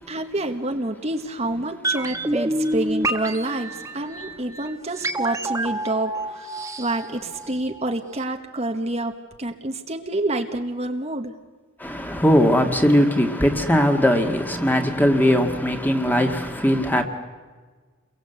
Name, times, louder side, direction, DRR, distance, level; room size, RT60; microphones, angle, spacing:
voice 1, 0.1-11.3, right 2 dB, 30° right, 1.3 m, -28 dB
sound 1, 1.8-7.9 8.2-8.3, right 1 dB, 15° right, 1.4 m, -28 dB
voice 2, 11.8-17.0, equal, 10° left, 2.0 m, -19 dB
29.5 x 22.5 x 8.1 m
head